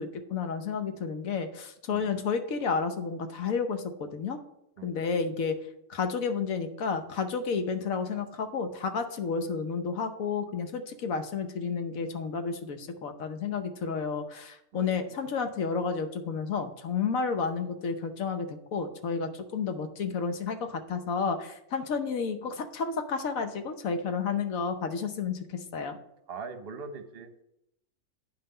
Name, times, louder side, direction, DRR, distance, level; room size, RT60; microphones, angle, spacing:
voice 1, 0.0-4.4 4.8-5.6 5.9-26.0, left 5 dB, 80° left, 7 dB, 1.3 m, -31 dB
voice 2, 1.9-2.2 4.8-5.0 14.7-15.0 26.3-27.4, right 4 dB, 50° right, 7 dB, 1.0 m, -42 dB
9.2 x 5.7 x 5.4 m, 0.82 s
omnidirectional pair, 1.4 m